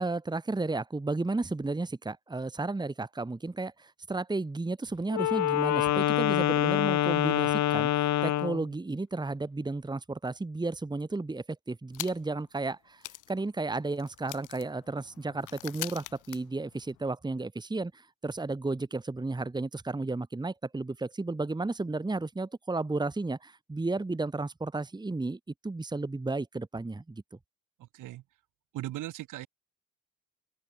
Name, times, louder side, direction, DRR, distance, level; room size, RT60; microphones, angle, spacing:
voice 1, 0.0-13.0 13.3-27.2, right 3 dB, 15° right, 1.5 m, -33 dB
Wind instrument woodwind instrument, 5.1-8.7, left 12 dB, 65° left, 1.3 m, -26 dB
sound 1, 11.9-12.4 12.7-12.8 13.0-17.1, left 16 dB, 90° left, 3.4 m, -43 dB
voice 2, 27.8-28.2 28.7-29.5, right 15 dB, 85° right, 7.8 m, -38 dB
open air
cardioid pair, 90°, 30 cm